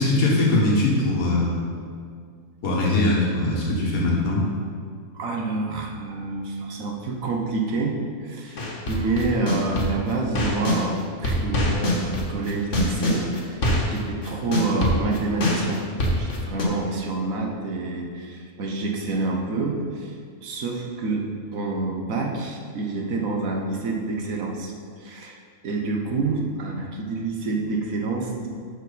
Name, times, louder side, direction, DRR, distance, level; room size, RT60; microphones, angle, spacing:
voice 1, 0.0-1.6 2.6-4.4, left 2 dB, 75° left, -4 dB, 1.9 m, -21 dB
voice 2, 5.1-15.8 16.2-20.1 20.4-24.7 25.0-28.5, right 3 dB, 70° right, 1 dB, 1.4 m, -28 dB
sound 1, 8.6-10.8 11.2-16.6, left 1 dB, 55° left, 1.6 m, -23 dB
12.0 x 4.6 x 4.1 m, 2.1 s
omnidirectional pair, 1.5 m